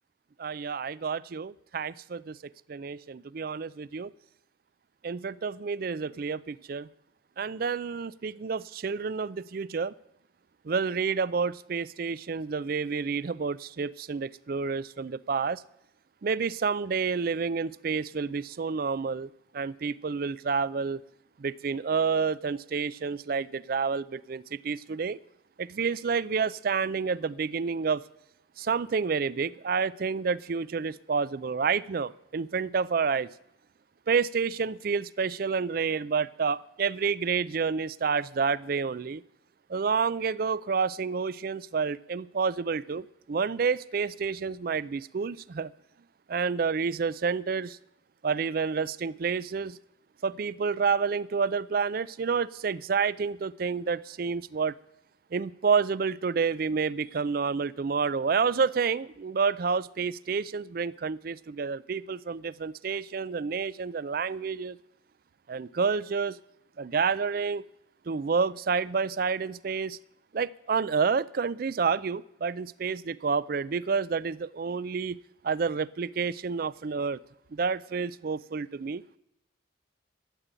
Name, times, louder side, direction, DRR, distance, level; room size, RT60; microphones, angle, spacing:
voice 1, 0.4-4.1 5.0-6.9 7.4-9.9 10.6-15.6 16.2-21.0 21.4-25.2 25.6-28.0 28.6-33.3 34.1-39.2 39.7-45.7 46.3-47.8 48.2-49.8 50.2-54.7 55.3-64.8 65.5-66.4 66.8-67.6 68.1-70.0 70.3-75.2 75.4-77.2 77.5-79.0, right 5 dB, 50° right, 20 dB, 0.4 m, -29 dB
12.5 x 8.3 x 8.9 m, 0.85 s
head